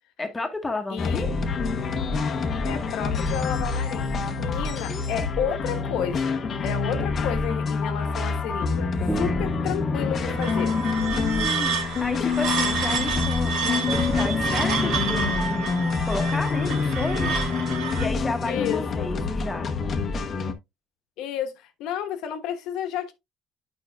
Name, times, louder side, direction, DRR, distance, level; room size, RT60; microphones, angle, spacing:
voice 1, 0.2-1.3 4.9-5.3 11.1-15.7 16.1-17.3 18.0-19.9, left 2 dB, 15° left, 1.3 m, -32 dB
voice 2, 0.9-1.2 2.6-4.1 4.4-8.9 9.2-10.8 18.4-19.1 21.2-23.1, left 9 dB, 75° left, 1.2 m, -31 dB
sound 1, 1.0-20.5, left 5 dB, 35° left, 0.9 m, -27 dB
sound 2, 9.1-18.7, right 1 dB, 5° right, 0.6 m, -35 dB
sound 3, 10.2-18.1, right 6 dB, 70° right, 2.6 m, -29 dB
9.0 x 5.5 x 2.3 m
cardioid pair, 145°, 0 cm